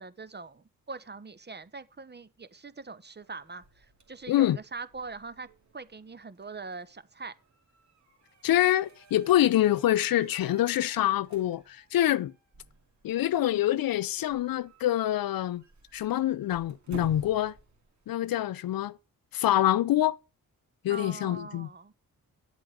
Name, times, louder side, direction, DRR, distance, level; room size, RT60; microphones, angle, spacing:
voice 1, 0.0-7.3 20.9-21.9, right 4 dB, 30° right, 1.0 m, -42 dB
sound 1, 3.2-18.3, right 4 dB, 55° right, 2.6 m, -53 dB
voice 2, 4.3-4.6 8.4-12.3 13.0-15.6 15.9-17.5 18.1-19.0 19.3-20.2 20.8-21.7, left 13 dB, 80° left, 0.6 m, -25 dB
9.3 x 7.9 x 4.8 m
cardioid pair, 55°, 34 cm